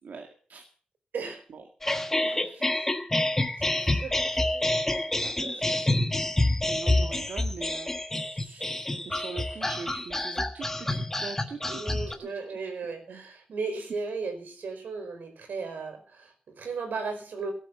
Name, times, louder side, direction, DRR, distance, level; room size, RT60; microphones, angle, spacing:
voice 1, 0.0-0.6 1.5-1.6 2.2-2.7 3.8-4.0 4.3-4.6 4.9-6.2 6.6-8.0 8.3-12.6 13.1-13.2 13.7-14.0, right 5 dB, 70° right, 3 dB, 2.1 m, -43 dB
sound 1, 1.8-12.1, left 1 dB, 15° left, 1.4 m, -28 dB
voice 2, 2.2-2.9 3.6-3.7 4.0-4.2 4.5-4.7 5.4-5.8 11.7-17.5, right 4 dB, 85° right, 6 dB, 4.7 m, -36 dB
17.0 x 9.1 x 7.0 m, 0.43 s
wide cardioid pair, 175°, 3 cm